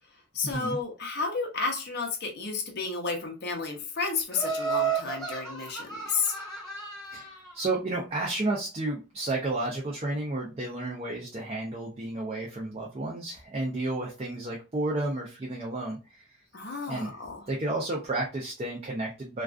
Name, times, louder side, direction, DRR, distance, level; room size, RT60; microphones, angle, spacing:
voice 1, 0.3-6.4 16.5-17.5, left 4 dB, 50° left, 2 dB, 0.7 m, -32 dB
Laughter, 4.3-7.5, right 6 dB, 5° left, 1.2 m, -32 dB
voice 2, 7.1-16.4 16.9-17.1 17.5-19.4, right 2 dB, 30° right, -2 dB, 0.4 m, -32 dB
2.3 x 2.3 x 2.3 m, 0.31 s
head